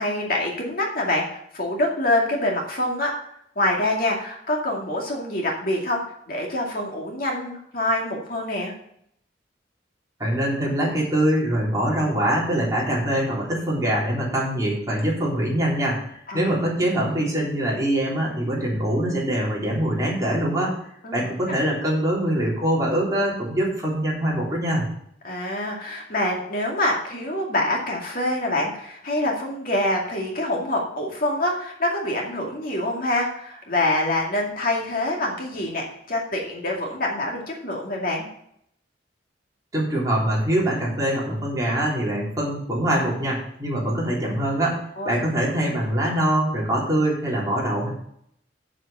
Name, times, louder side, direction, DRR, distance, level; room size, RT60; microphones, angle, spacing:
voice 1, 0.0-3.2 3.6-6.0 6.3-8.7 16.3-16.5 21.0-21.3 25.2-38.3 45.0-45.1, left 1 dB, 55° left, 0 dB, 2.3 m, -25 dB
voice 2, 10.2-20.7 21.1-24.8 39.7-44.8 45.1-47.9, right 1 dB, 20° right, -5 dB, 3.6 m, -23 dB
8.0 x 7.6 x 6.8 m, 0.70 s
head